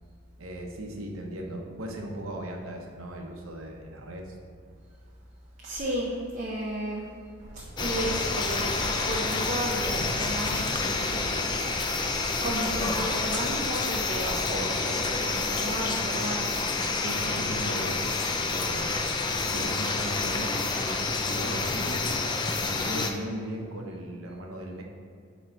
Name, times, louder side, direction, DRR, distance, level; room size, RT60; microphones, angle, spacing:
voice 1, 0.4-4.4 16.9-18.2 18.5-18.9 19.5-22.1 22.6-24.8, right 1 dB, 85° right, 1 dB, 0.9 m, -37 dB
voice 2, 5.6-7.1 7.5-11.6 12.4-16.5, right 1 dB, 35° right, -3 dB, 0.6 m, -33 dB
sound 1, 7.4-14.7, right 1 dB, 55° right, 1.0 m, -43 dB
sound 2, 7.8-23.1, left 3 dB, 20° left, 0.3 m, -28 dB
7.8 x 3.1 x 4.5 m, 2.3 s
head